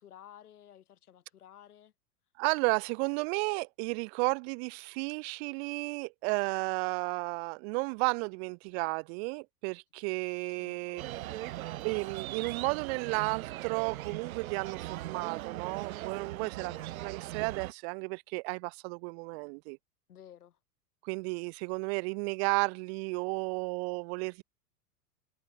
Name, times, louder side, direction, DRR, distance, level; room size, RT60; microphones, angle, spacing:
voice 1, 0.0-1.9 10.6-11.4 16.4-16.9 20.1-20.6, left 10 dB, 70° left, 3.7 m, -54 dB
voice 2, 2.4-11.0 11.7-16.7 17.0-19.8 21.0-24.4, right 34 dB, 45° right, 0.9 m, -33 dB
sound 1, 11.0-17.7, right 15 dB, 60° right, 2.3 m, -40 dB
figure-of-eight pair, 95°, 46 cm